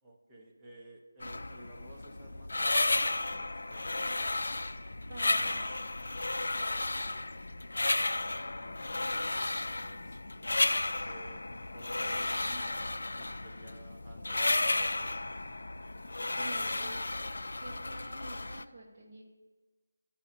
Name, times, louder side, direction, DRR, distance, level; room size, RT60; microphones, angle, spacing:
voice 1, 0.0-4.5 6.6-7.2 8.2-10.2 11.0-11.4 11.7-15.3, right 1 dB, 10° right, -3 dB, 0.7 m, -54 dB
sound 1, 1.2-18.6, left 2 dB, 80° left, 0.3 m, -33 dB
voice 2, 5.1-5.8 16.2-17.3 17.6-19.2, right 2 dB, 30° right, -4 dB, 1.1 m, -49 dB
14.0 x 5.5 x 2.7 m, 1.3 s
figure-of-eight pair, 170°, 0 cm